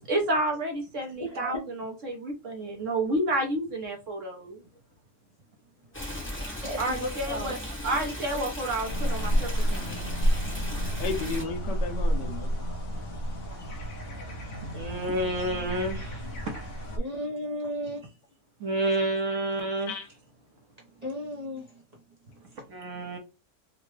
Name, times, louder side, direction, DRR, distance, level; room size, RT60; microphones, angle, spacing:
voice 1, 0.0-4.6 6.8-7.6 7.8-10.0 14.7-16.2 18.6-19.9 22.7-23.2, right 1 dB, 55° right, 1.0 m, -30 dB
voice 2, 1.2-1.6 6.2-6.3 6.6-7.5 17.0-18.0 21.0-21.8, equal, 35° right, 0.7 m, -35 dB
Stream, 5.9-11.4, equal, 10° left, 0.9 m, -36 dB
sound 1, 8.9-17.0, equal, 55° left, 1.0 m, -30 dB
voice 3, 11.0-12.5 16.9-17.0 17.6-17.7 19.9-20.1, left 4 dB, 85° left, 1.3 m, -34 dB
3.8 x 2.2 x 3.1 m
omnidirectional pair, 1.8 m